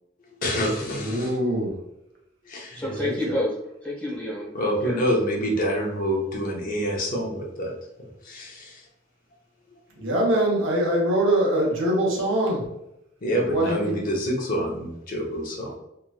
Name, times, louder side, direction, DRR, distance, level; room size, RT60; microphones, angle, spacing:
voice 1, 0.4-1.3 2.5-2.8 4.5-7.7 8.3-8.8 13.2-15.8, equal, 45° left, -1 dB, 0.7 m, -27 dB
voice 2, 1.0-1.7 2.9-3.1 10.0-12.7 13.5-14.0, right 1 dB, 85° right, -2 dB, 0.9 m, -23 dB
voice 3, 2.7-3.5 3.8-5.1, left 1 dB, 10° left, -6 dB, 1.0 m, -29 dB
3.0 x 2.5 x 2.3 m, 0.84 s
head